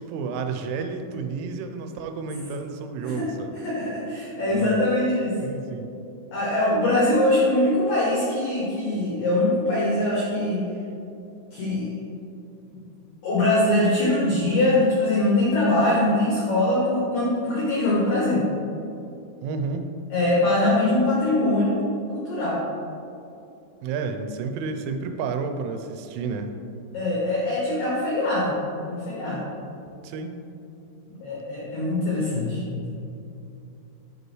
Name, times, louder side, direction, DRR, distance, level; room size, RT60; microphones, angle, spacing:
voice 1, 0.0-3.6 4.5-4.8 5.4-5.9 19.4-19.9 23.8-26.5 30.0-30.4, right 5 dB, 85° right, 6 dB, 3.0 m, -31 dB
voice 2, 3.6-5.3 6.3-10.6 11.5-11.9 13.2-18.5 20.1-21.8 22.1-22.6 26.9-28.5 28.9-29.4 31.2-32.9, left 1 dB, 90° left, -6 dB, 1.9 m, -22 dB
9.5 x 5.3 x 3.1 m, 2.7 s
omnidirectional pair, 5.6 m